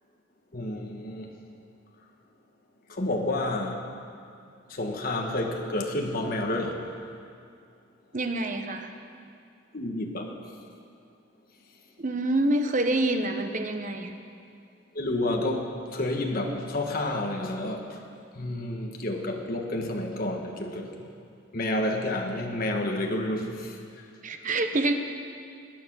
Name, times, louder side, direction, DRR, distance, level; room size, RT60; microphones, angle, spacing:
voice 1, 0.5-1.3 2.9-3.9 4.7-6.8 9.7-10.3 14.9-18.0 18.3-21.0 21.5-23.7, left 1 dB, 45° left, 2 dB, 1.4 m, -30 dB
voice 2, 8.1-8.9 12.0-14.1 24.2-24.9, right 2 dB, 40° right, 6 dB, 1.0 m, -26 dB
20.0 x 9.4 x 6.2 m, 2.4 s
head